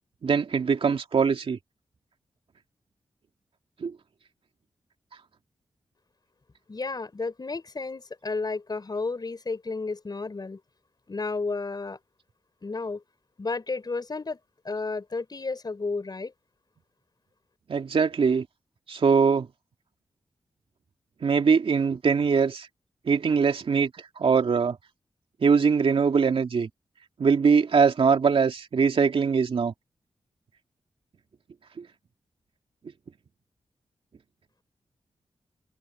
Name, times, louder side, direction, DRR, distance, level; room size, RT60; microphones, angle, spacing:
voice 1, 0.2-1.6 3.8-3.9 17.7-18.5 18.9-19.5 21.2-22.7 23.1-23.9 24.2-24.8 25.4-26.7 27.2-29.7 31.8-31.9, right 5 dB, 70° right, 2.7 m, -22 dB
voice 2, 6.7-10.6 11.1-12.0 12.6-13.0 13.4-14.4 14.6-16.3, left 3 dB, 45° left, 5.5 m, -32 dB
cardioid pair, 55°, 10 cm